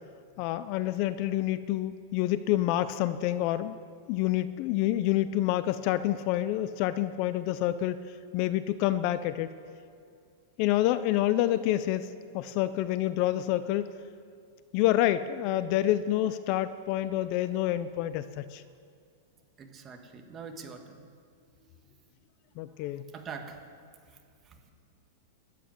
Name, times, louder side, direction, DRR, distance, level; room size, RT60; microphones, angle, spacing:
voice 1, 0.4-3.7 4.1-8.0 8.3-9.6 10.6-12.1 12.3-13.9 14.7-18.6 22.6-23.0, left 14 dB, 45° left, 13 dB, 0.5 m, -28 dB
voice 2, 19.6-21.1 21.6-22.1 22.5-23.6 24.0-24.7, right 5 dB, 20° right, 4 dB, 1.4 m, -46 dB
12.5 x 8.6 x 9.4 m, 2.3 s
supercardioid pair, 150°, 0 cm